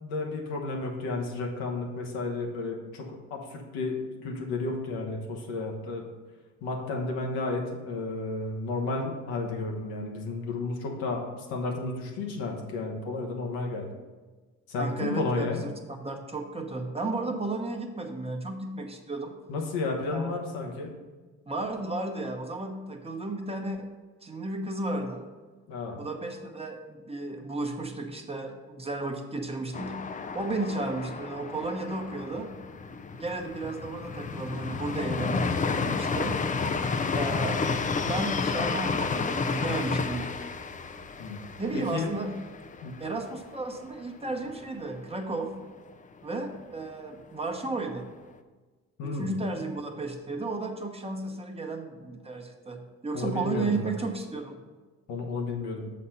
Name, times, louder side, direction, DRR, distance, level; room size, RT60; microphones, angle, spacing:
voice 1, 0.0-6.0 6.6-11.2 11.5-13.9 14.7-15.6 19.5-20.9 25.7-26.0 41.2-42.1 42.8-43.0 49.0-49.4 53.1-53.9 55.1-55.9, left 3 dB, 80° left, 1 dB, 1.3 m, -32 dB
voice 2, 14.8-15.7 16.0-19.4 20.1-20.4 21.5-23.9 24.2-25.2 26.0-30.0 30.3-32.5 33.1-36.4 37.1-37.6 38.0-40.4 41.6-42.3 43.0-45.5 46.2-48.1 49.0-54.6, right 2 dB, 15° right, 3 dB, 0.9 m, -33 dB
sound 1, 29.7-43.5 43.8-43.9 44.2-44.8, left 4 dB, 25° left, 0.4 m, -31 dB
6.4 x 4.2 x 5.6 m, 1.3 s
supercardioid pair, 70°, 35 cm